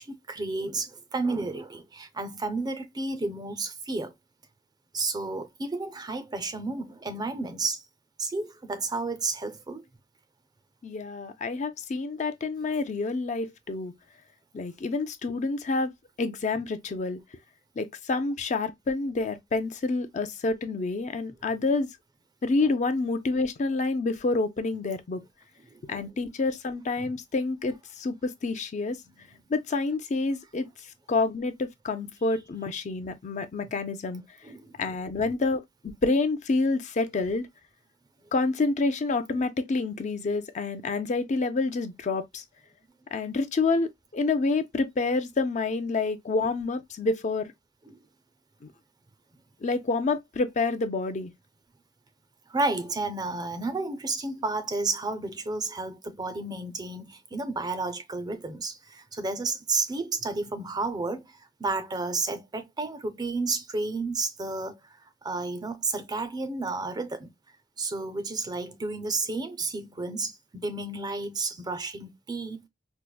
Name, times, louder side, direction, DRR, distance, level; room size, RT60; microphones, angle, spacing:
voice 1, 0.0-4.1 4.9-7.8 8.2-9.9 22.6-22.7 25.7-26.1 27.0-27.1 29.0-29.5 34.4-34.7 47.8-48.0 52.5-67.3 67.8-72.7, right 3 dB, 20° right, 0.4 m, -32 dB
voice 2, 10.8-13.9 14.5-15.9 16.2-17.2 17.8-21.9 22.4-25.2 25.9-29.0 29.5-30.7 31.1-34.2 34.8-37.4 38.3-42.4 43.1-47.5 49.6-51.3, left 3 dB, 40° left, 0.4 m, -28 dB
4.6 x 2.1 x 2.2 m
head